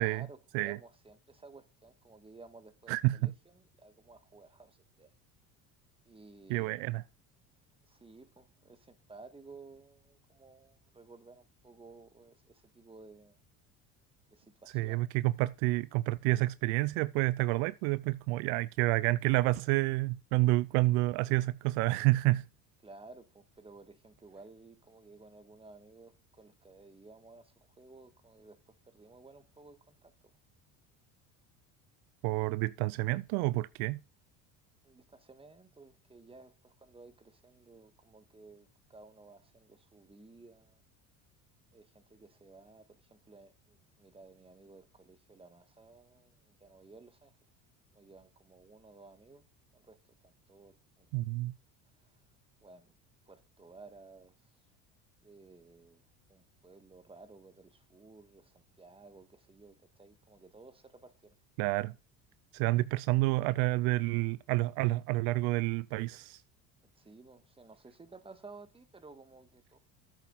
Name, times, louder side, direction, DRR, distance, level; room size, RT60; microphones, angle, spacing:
voice 1, 0.0-5.1 6.1-6.9 7.8-13.4 14.3-15.1 22.8-30.1 34.8-40.8 41.7-47.3 47.9-49.5 49.7-51.1 52.0-52.2 52.6-52.9 53.2-54.6 55.2-56.0 56.3-61.4 66.9-69.8, right 3 dB, 15° right, 1.6 m, -55 dB
voice 2, 2.9-3.3 6.5-7.0 14.7-22.5 32.2-34.0 51.1-51.5 61.6-61.9 62.5-66.4, right 19 dB, 75° right, 0.5 m, -29 dB
8.9 x 7.4 x 3.9 m
supercardioid pair, 90°, 38 cm